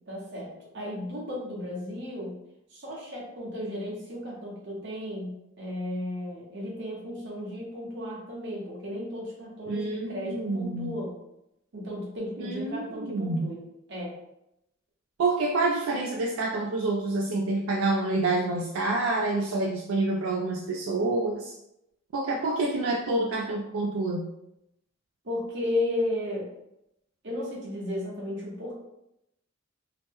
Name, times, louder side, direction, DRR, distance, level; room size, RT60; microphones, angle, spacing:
voice 1, 0.1-2.3 2.7-11.2 11.7-13.6 13.9-14.1 25.2-26.5 27.2-28.7, left 1 dB, 60° right, -4 dB, 1.0 m, -34 dB
voice 2, 9.7-11.0 12.4-13.6 15.2-21.5 22.1-24.3, right 2 dB, 85° right, 0 dB, 0.3 m, -28 dB
2.8 x 2.1 x 3.4 m, 0.83 s
head